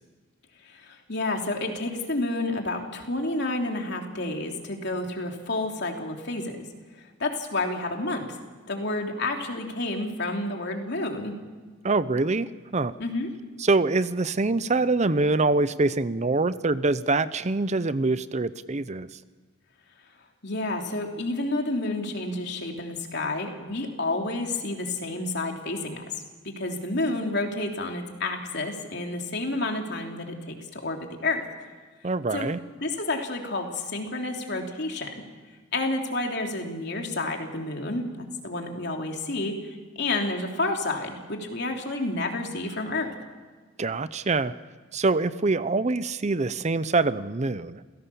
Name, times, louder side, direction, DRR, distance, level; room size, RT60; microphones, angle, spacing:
voice 1, 0.7-6.6 7.2-8.4 8.7-11.4 13.0-13.3 20.4-26.0 26.6-31.4 32.3-32.5 32.8-35.1 35.7-43.1, left 2 dB, 60° left, 2 dB, 3.2 m, -30 dB
voice 2, 11.8-12.9 13.6-19.1 32.0-32.6 43.8-44.5 44.9-47.8, right 3 dB, 35° right, 14 dB, 0.7 m, -24 dB
28.0 x 17.0 x 7.1 m, 1.5 s
head